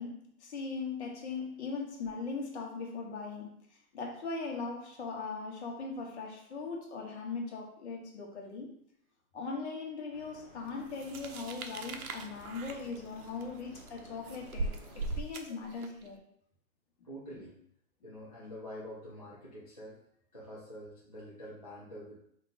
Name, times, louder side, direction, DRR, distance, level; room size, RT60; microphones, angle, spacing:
voice 1, 0.0-3.5 3.9-8.7 9.3-16.2, left 4 dB, 50° left, 0 dB, 1.2 m, -39 dB
sound 1, 10.1-15.2, left 1 dB, 15° right, 0.7 m, -54 dB
sound 2, 10.9-16.1, right 3 dB, 75° right, 0.8 m, -40 dB
voice 2, 17.0-17.6 18.0-20.0 20.3-22.2, equal, 30° left, -7 dB, 0.4 m, -46 dB
5.2 x 2.5 x 3.9 m, 0.69 s
hypercardioid pair, 170°, 44 cm